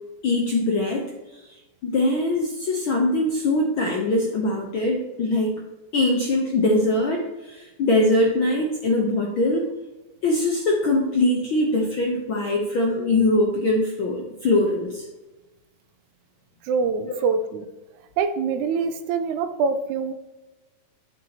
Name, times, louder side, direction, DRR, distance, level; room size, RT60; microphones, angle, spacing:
voice 1, 0.2-1.1 1.5-1.6 1.8-5.6 5.9-9.7 10.2-15.0 17.0-17.1, left 2 dB, 70° left, 0 dB, 1.2 m, -22 dB
voice 2, 16.7-17.7 18.2-20.1, right 5 dB, 80° right, 9 dB, 2.1 m, -24 dB
10.5 x 7.4 x 2.9 m, 1.1 s
omnidirectional pair, 3.4 m